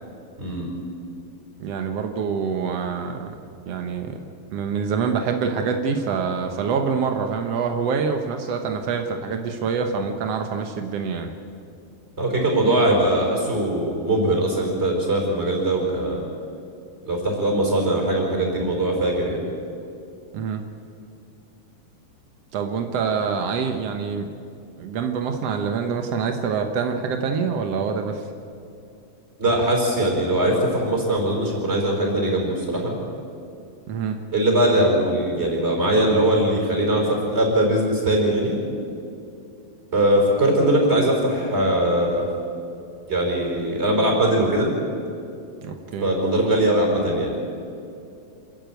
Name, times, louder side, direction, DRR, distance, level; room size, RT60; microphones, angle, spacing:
voice 1, 0.4-0.7 12.2-16.2 17.1-19.4 29.4-33.0 34.3-38.5 39.9-42.3 43.1-44.7 46.0-47.3, right 1 dB, 15° right, 0 dB, 5.0 m, -21 dB
voice 2, 1.6-3.3 3.7-4.2 4.5-11.3 20.3-20.6 22.5-24.3 24.8-28.2 33.9-34.2 45.6-46.1, right 5 dB, 80° right, 5 dB, 1.4 m, -26 dB
27.0 x 14.5 x 9.4 m, 2.6 s
omnidirectional pair, 4.4 m